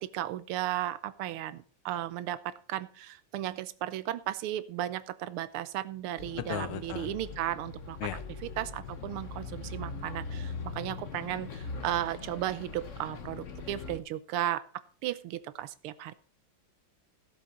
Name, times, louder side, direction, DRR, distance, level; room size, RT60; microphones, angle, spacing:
voice 1, 0.1-8.0 8.4-14.6 15.0-16.1, right 13 dB, 90° right, 14 dB, 1.6 m, -35 dB
Bus, 6.2-14.0, left 4 dB, 45° left, 1.2 m, -41 dB
voice 2, 6.5-7.1 8.0-8.2, left 12 dB, 90° left, 12 dB, 1.6 m, -36 dB
16.5 x 7.3 x 4.3 m, 0.42 s
omnidirectional pair, 2.3 m